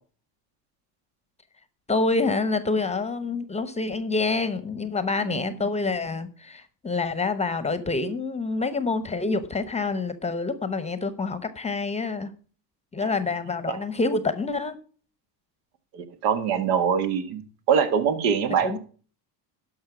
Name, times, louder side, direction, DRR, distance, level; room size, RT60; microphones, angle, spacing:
voice 1, 1.9-12.3 12.9-14.8 18.6-18.8, left 3 dB, 15° left, 13 dB, 0.8 m, -27 dB
voice 2, 5.2-5.6 13.0-13.1 13.7-13.8 15.9-17.4 17.7-18.8, right 7 dB, 75° right, 9 dB, 1.7 m, -24 dB
12.0 x 5.7 x 5.9 m, 0.40 s
supercardioid pair, 105°, 48 cm